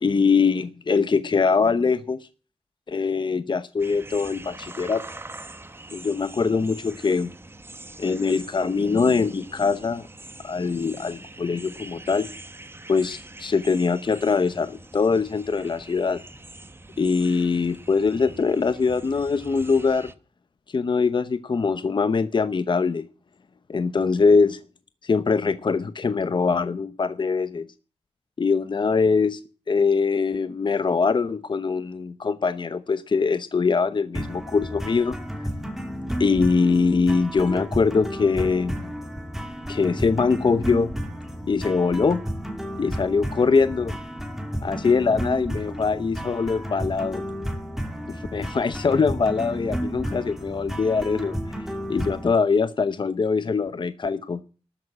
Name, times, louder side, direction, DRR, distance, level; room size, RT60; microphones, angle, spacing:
voice 1, 0.0-2.2 2.9-5.0 5.9-7.3 8.0-10.1 10.4-12.3 12.9-16.2 17.0-20.1 20.7-23.0 23.7-24.6 25.0-27.7 28.4-29.4 29.7-35.2 36.2-38.8 39.7-40.9 41.5-42.2 42.8-43.9 44.6-47.2 48.1-51.4 51.9-54.4, left 4 dB, 45° left, 12 dB, 0.8 m, -22 dB
sound 1, 3.8-20.1, right 2 dB, 20° right, 1.1 m, -43 dB
sound 2, 34.1-52.3, equal, 5° right, 2.7 m, -32 dB
13.0 x 9.1 x 8.6 m, 0.36 s
wide cardioid pair, 135°, 11 cm